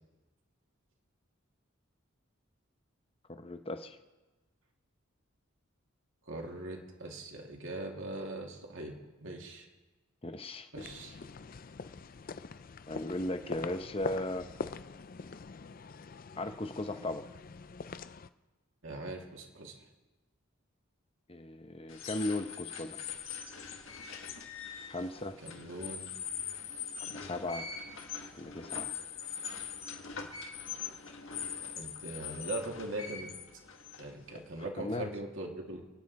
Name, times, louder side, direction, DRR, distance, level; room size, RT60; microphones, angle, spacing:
voice 1, 3.3-4.0 10.2-10.9 12.9-14.5 16.3-17.3 21.3-23.0 24.9-25.4 27.0-27.7 28.3-28.9 34.8-35.1, left 1 dB, 25° left, 8 dB, 0.9 m, -37 dB
voice 2, 6.3-8.9 9.2-9.7 10.7-11.2 18.8-19.7 25.4-26.1 31.8-33.3 34.0-35.9, right 2 dB, 65° right, 0 dB, 2.7 m, -41 dB
sound 1, 10.8-18.3, left 4 dB, 45° left, 0.4 m, -44 dB
sound 2, 21.9-34.6, left 7 dB, 70° left, 1.7 m, -42 dB
28.0 x 10.0 x 4.3 m, 1.2 s
head